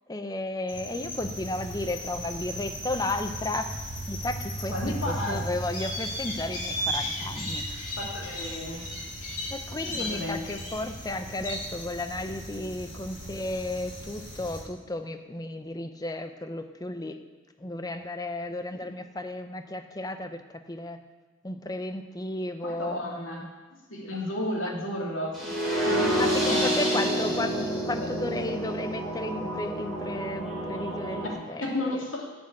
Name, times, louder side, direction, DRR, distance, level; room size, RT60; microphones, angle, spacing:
voice 1, 0.1-3.7 4.1-7.9 9.5-17.2 17.6-20.4 20.7-21.0 21.4-23.4 25.9-32.0, left 2 dB, 20° left, 8 dB, 0.6 m, -34 dB
sound 1, 0.7-14.6, equal, 40° left, 2.9 m, -36 dB
voice 2, 4.7-5.6 8.0-8.8 9.9-10.5 22.6-23.4 23.7-25.5 25.9-27.6 28.0-28.2 31.2-32.3, left 1 dB, 70° left, -2 dB, 2.7 m, -33 dB
sound 2, 25.3-31.3, equal, ahead, 3.2 m, -28 dB
10.5 x 6.2 x 8.6 m, 1.3 s
head